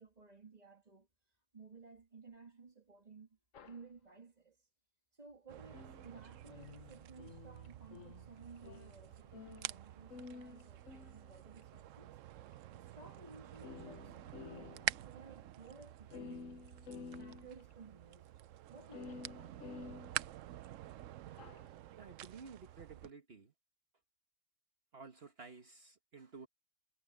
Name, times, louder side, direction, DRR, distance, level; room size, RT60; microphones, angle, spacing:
voice 1, 0.0-4.7 5.1-19.4, right 4 dB, 30° right, 2.0 m, -57 dB
sound 1, 3.5-3.8 5.7-9.8 10.1-11.6 12.5-12.6 13.2-13.3 13.5-15.1 15.4-15.5 15.7-15.8 16.0-17.7 18.9-20.7 21.3-21.7, left 5 dB, 90° left, 1.3 m, -52 dB
sound 2, 5.5-23.1, right 13 dB, 85° right, 1.0 m, -48 dB
voice 2, 22.0-23.5 24.9-26.5, right 5 dB, 55° right, 1.6 m, -53 dB
omnidirectional pair, 1.3 m